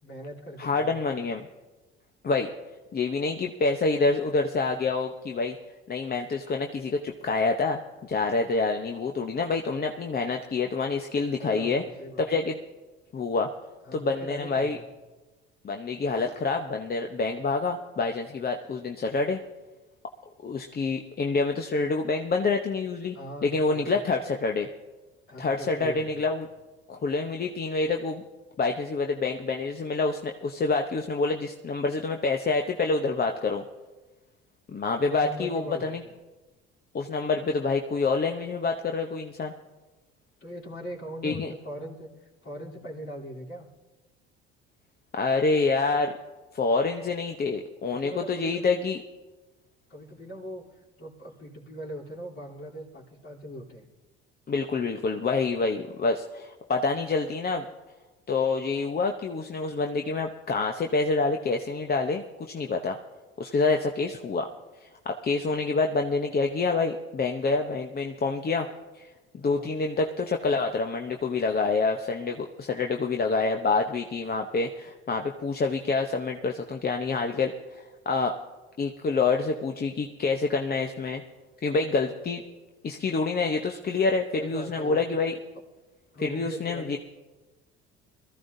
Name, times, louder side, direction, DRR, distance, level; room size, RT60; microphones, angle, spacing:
voice 1, 0.0-1.1 11.4-12.3 13.8-14.9 23.1-24.0 25.3-26.2 35.0-36.1 40.4-42.1 42.4-43.7 47.9-48.7 49.9-50.6 51.0-53.8 69.4-69.7 84.4-85.0 86.1-87.0, equal, 50° left, -4 dB, 3.3 m, -40 dB
voice 2, 0.6-1.5 2.2-2.5 2.9-5.6 5.9-11.8 12.2-12.6 13.1-13.5 13.9-14.8 15.6-19.4 20.4-23.2 23.4-24.7 25.4-26.5 26.9-28.2 28.6-33.6 34.7-36.0 36.9-39.5 41.2-41.5 45.1-46.1 46.5-49.0 54.5-57.6 58.3-63.0 63.4-64.5 65.0-68.7 69.0-69.1 69.3-78.4 78.8-81.2 81.6-82.4 82.8-85.4 86.2-87.0, left 4 dB, 30° left, 4 dB, 0.9 m, -27 dB
21.5 x 14.0 x 2.7 m, 1.2 s
hypercardioid pair, 70°, 29 cm